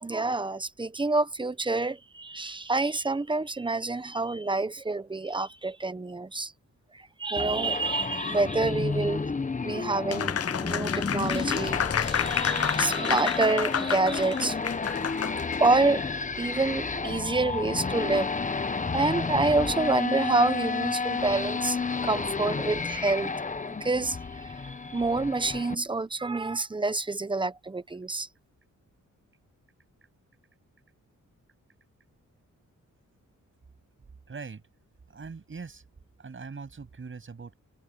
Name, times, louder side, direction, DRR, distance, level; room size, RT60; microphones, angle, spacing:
voice 1, 0.0-6.5 6.9-9.3 9.6-10.3 10.6-14.6 15.6-16.0 16.4-18.3 18.9-21.8 22.0-23.3 23.8-28.3, right 3 dB, 15° right, 1.0 m, -27 dB
sound 1, 7.4-25.7, left 4 dB, 25° left, 1.0 m, -31 dB
Applause, 10.1-15.7, left 8 dB, 50° left, 0.7 m, -30 dB
voice 2, 34.3-34.6 35.1-35.8 36.2-37.5, right 5 dB, 40° right, 8.0 m, -41 dB
wide cardioid pair, 115°, 30 cm